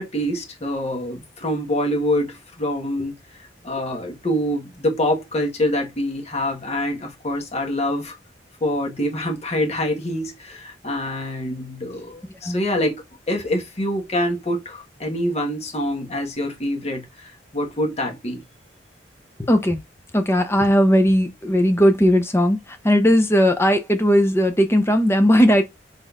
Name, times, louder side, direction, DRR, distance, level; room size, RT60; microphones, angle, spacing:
voice 1, 0.0-3.1 3.6-8.2 8.6-13.0 13.3-18.4, left 1 dB, 40° left, 1.4 m, -25 dB
voice 2, 19.5-19.8 20.1-25.6, equal, 15° left, 0.6 m, -17 dB
4.1 x 3.8 x 2.4 m
head